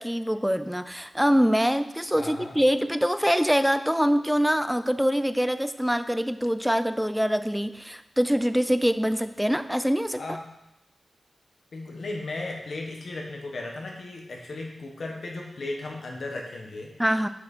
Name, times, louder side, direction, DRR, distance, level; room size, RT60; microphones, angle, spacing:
voice 1, 0.0-10.2 17.0-17.3, equal, ahead, 11 dB, 0.3 m, -24 dB
voice 2, 2.1-2.5 10.1-10.4 11.7-17.0, left 2 dB, 65° left, 0 dB, 1.4 m, -36 dB
7.3 x 6.0 x 4.4 m, 0.89 s
wide cardioid pair, 150°, 0 cm